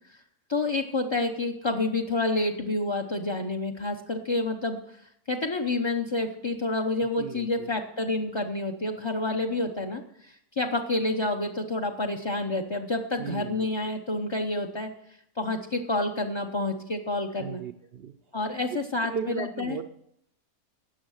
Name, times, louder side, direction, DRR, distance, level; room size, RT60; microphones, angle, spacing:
voice 1, 0.5-14.9 15.4-17.6 18.3-19.8, left 2 dB, 40° left, 5 dB, 0.4 m, -29 dB
voice 2, 7.2-7.7 13.2-13.7 17.4-18.1 19.0-19.8, right 7 dB, 70° right, 8 dB, 0.5 m, -36 dB
16.5 x 6.3 x 6.4 m, 0.73 s
omnidirectional pair, 1.7 m